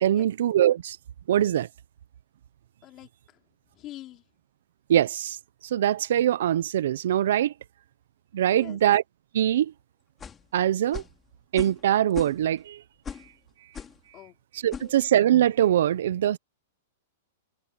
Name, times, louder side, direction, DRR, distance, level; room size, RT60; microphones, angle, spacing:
voice 1, 0.0-1.0 1.3-1.7 4.9-5.4 5.7-7.5 8.3-9.0 9.3-9.7 10.5-11.0 11.5-12.8 14.6-16.4, right 11 dB, 70° right, 1.1 m, -22 dB
voice 2, 2.8-3.4 3.7-4.2 8.5-8.8 14.1-15.0, left 15 dB, 35° left, 4.1 m, -46 dB
sound 1, 10.2-10.5 10.9-11.2 11.6-11.8 12.1-12.6 13.0-13.3 13.7-14.0 14.7-14.9, left 7 dB, 20° left, 3.9 m, -38 dB
hypercardioid pair, 125°, 0 cm